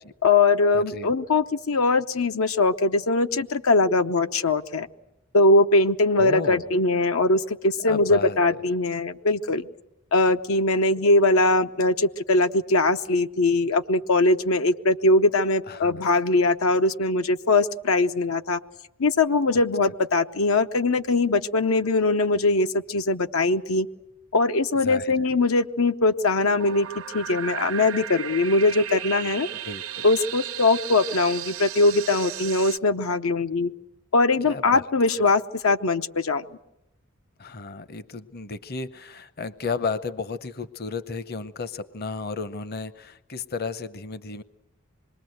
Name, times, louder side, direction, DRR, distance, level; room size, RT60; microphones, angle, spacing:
voice 1, 0.2-4.9 5.3-9.7 10.1-18.6 19.0-23.9 24.3-26.9 27.1-29.5 30.0-33.7 34.1-36.4, left 2 dB, 90° left, 8 dB, 0.9 m, -21 dB
voice 2, 0.7-1.1 6.2-6.7 7.8-8.4 15.7-16.1 24.8-25.1 29.6-30.0 34.4-34.9 37.4-44.4, left 4 dB, 50° left, 14 dB, 0.8 m, -33 dB
sound 1, 26.6-32.8, right 11 dB, 80° right, 0.9 m, -35 dB
26.5 x 21.5 x 7.9 m, 0.92 s
head